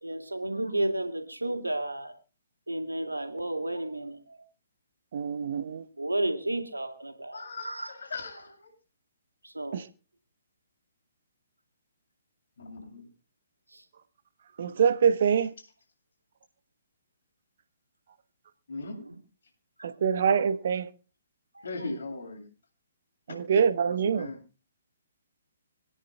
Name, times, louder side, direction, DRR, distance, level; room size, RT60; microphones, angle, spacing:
voice 1, 0.0-2.1 2.7-4.4 6.0-8.0 9.4-9.8 13.7-13.8 19.0-19.2 21.5-21.9, right 1 dB, 85° right, 2.3 m, -32 dB
voice 2, 5.1-5.9 9.7-9.9 14.6-15.5 19.8-20.9 23.3-24.3, right 7 dB, 50° right, 1.1 m, -25 dB
voice 3, 7.3-8.7 12.6-13.1 18.7-19.0 21.6-22.4 23.3-23.4 23.9-24.4, left 3 dB, 60° left, 7.7 m, -39 dB
26.5 x 10.0 x 2.3 m
figure-of-eight pair, 125°, 0 cm